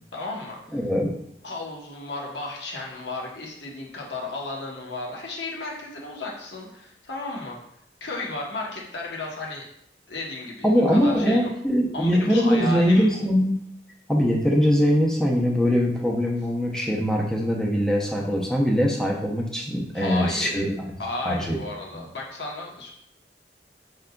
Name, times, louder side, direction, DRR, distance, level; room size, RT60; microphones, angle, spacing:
voice 1, 0.1-0.8 1.4-7.6 8.0-9.6 10.1-11.5 11.9-13.2 19.9-20.7 21.0-22.9, left 2 dB, 75° left, -2 dB, 1.0 m, -34 dB
voice 2, 0.7-1.1 10.6-13.6 14.1-20.8 21.2-21.6, equal, 5° left, -2 dB, 0.6 m, -22 dB
5.3 x 3.7 x 2.2 m, 0.73 s
head